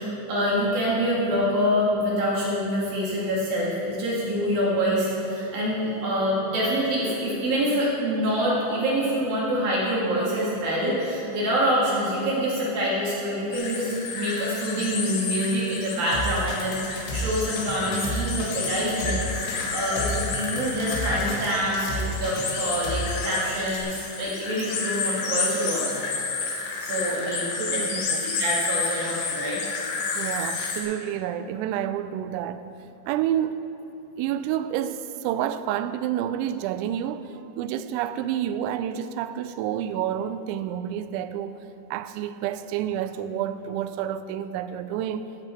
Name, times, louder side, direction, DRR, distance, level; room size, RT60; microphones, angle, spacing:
voice 1, 0.0-26.1 26.8-29.6, equal, 60° right, 3.5 m, -26 dB
sound 1, 13.5-30.8, left 4 dB, 65° left, 2.5 m, -31 dB
sound 2, 16.1-23.8, left 1 dB, 85° left, 4.1 m, -32 dB
voice 2, 27.6-28.3 30.2-32.7 33.1-33.6 34.2-45.2, right 10 dB, 85° right, 2.9 m, -29 dB
16.0 x 9.7 x 4.5 m
omnidirectional pair, 5.3 m